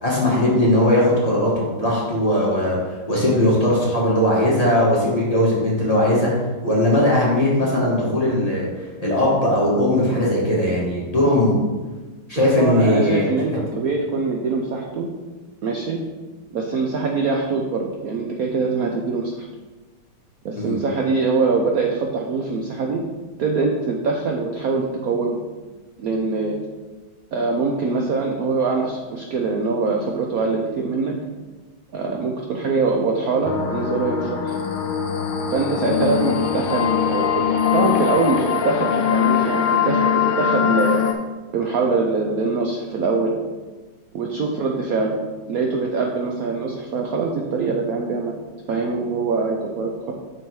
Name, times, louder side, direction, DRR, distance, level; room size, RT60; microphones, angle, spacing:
voice 1, 0.0-2.8 3.1-6.3 6.6-8.7 9.0-11.6 12.3-13.2 13.5-13.6 20.6-20.8, left 1 dB, 20° left, -6 dB, 1.4 m, -19 dB
voice 2, 12.6-15.1 15.6-16.0 16.5-19.4 20.4-23.0 23.4-25.4 26.0-26.5 27.3-31.1 31.9-34.5 35.5-41.0 41.5-43.3 44.1-45.1 45.5-48.3 48.7-50.1, right 4 dB, 80° right, 1 dB, 0.8 m, -23 dB
sound 1, 33.4-41.1, left 8 dB, 85° left, 1.5 m, -21 dB
6.4 x 4.5 x 4.6 m, 1.3 s
omnidirectional pair, 2.3 m